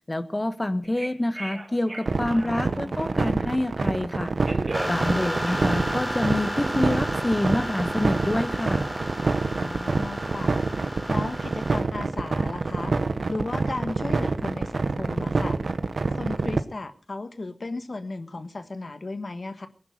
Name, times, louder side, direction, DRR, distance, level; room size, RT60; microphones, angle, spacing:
voice 1, 0.1-4.3 4.8-8.9, left 1 dB, 30° left, 11 dB, 1.4 m, -27 dB
Telephone, 0.8-3.3 4.1-6.5, right 2 dB, 50° right, 2.6 m, -38 dB
sound 1, 2.1-16.6, right 3 dB, 85° right, 1.0 m, -26 dB
voice 2, 2.3-3.1 9.5-10.5 10.8-12.9 13.3-15.6 16.1-19.7, left 2 dB, 65° left, 10 dB, 1.5 m, -35 dB
sound 2, 4.7-11.8, equal, 5° left, 3.9 m, -33 dB
19.5 x 10.5 x 6.6 m, 0.41 s
wide cardioid pair, 45°, 0 cm